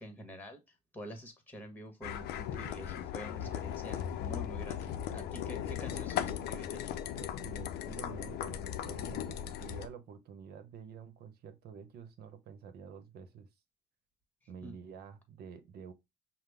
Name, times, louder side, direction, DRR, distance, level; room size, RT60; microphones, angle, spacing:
voice 1, 0.0-6.8 14.6-14.7, equal, 10° left, 1.3 m, -47 dB
sound 1, 2.0-9.9, left 10 dB, 75° left, 0.5 m, -38 dB
voice 2, 7.2-13.5 14.5-15.9, right 6 dB, 70° right, 0.9 m, -49 dB
5.7 x 2.1 x 3.4 m
cardioid pair, 110°, 17 cm